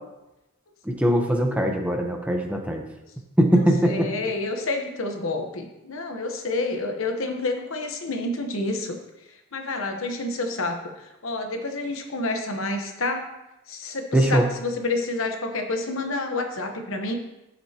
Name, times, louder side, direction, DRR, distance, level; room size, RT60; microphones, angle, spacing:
voice 1, 0.9-2.8 3.4-4.1 14.1-14.5, right 1 dB, 5° right, 2 dB, 0.8 m, -21 dB
voice 2, 3.8-9.0 9.5-10.8 11.2-13.3 13.7-17.1, left 2 dB, 65° left, 4 dB, 1.0 m, -28 dB
11.0 x 6.8 x 2.9 m, 0.96 s
head